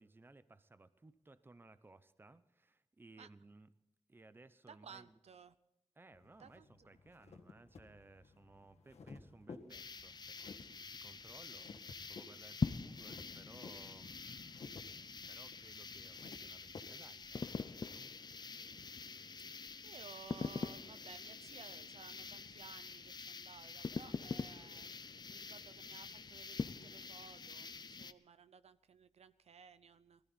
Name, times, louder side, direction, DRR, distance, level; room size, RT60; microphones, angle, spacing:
voice 1, 0.0-3.7 4.1-5.2 6.0-14.7 15.3-18.1, right 2 dB, 20° right, 14 dB, 0.6 m, -61 dB
voice 2, 4.7-5.5 6.4-6.7 19.8-24.9 25.3-30.2, right 6 dB, 80° right, 14 dB, 0.6 m, -57 dB
sound 1, 6.1-16.8, left 4 dB, 85° left, 1.7 m, -56 dB
sound 2, 9.7-28.1, left 5 dB, 40° left, 0.5 m, -45 dB
20.0 x 14.0 x 4.1 m, 0.86 s
wide cardioid pair, 125°, 11 cm